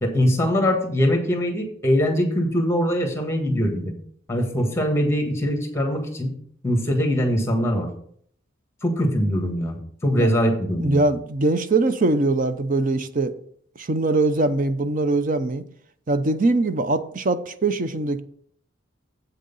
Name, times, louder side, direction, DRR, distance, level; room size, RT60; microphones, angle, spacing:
voice 1, 0.0-3.9 4.3-6.3 6.6-7.9 8.8-9.8 10.0-11.1, equal, 15° left, 3 dB, 1.5 m, -22 dB
voice 2, 10.8-13.3 13.8-15.6 16.1-18.2, right 2 dB, 45° right, 11 dB, 0.6 m, -22 dB
8.0 x 6.4 x 5.4 m, 0.62 s
head